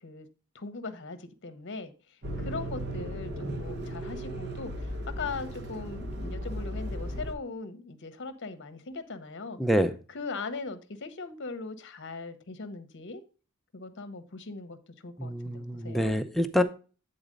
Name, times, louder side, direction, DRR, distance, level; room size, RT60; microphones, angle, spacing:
voice 1, 0.5-9.6 10.1-13.2 13.7-16.1, left 4 dB, 55° left, 0.8 m, -40 dB
sound 1, 2.2-7.3, equal, 50° right, 1.1 m, -36 dB
voice 2, 15.2-16.6, equal, ahead, 0.5 m, -26 dB
8.7 x 4.0 x 5.1 m
head